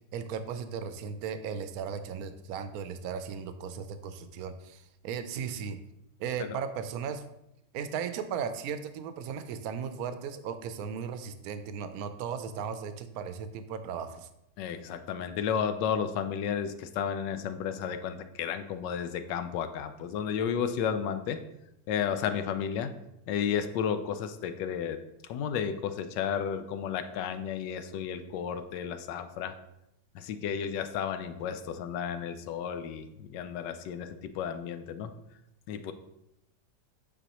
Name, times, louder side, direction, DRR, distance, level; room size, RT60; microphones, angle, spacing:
voice 1, 0.1-5.8 6.2-7.2 7.7-14.3, right 7 dB, 70° right, 10 dB, 0.9 m, -36 dB
voice 2, 14.6-21.4 21.9-23.0 23.3-25.0 25.3-29.5 30.1-35.1 35.7-35.9, left 8 dB, 85° left, 9 dB, 1.2 m, -32 dB
9.1 x 4.2 x 2.9 m, 0.84 s
omnidirectional pair, 1.9 m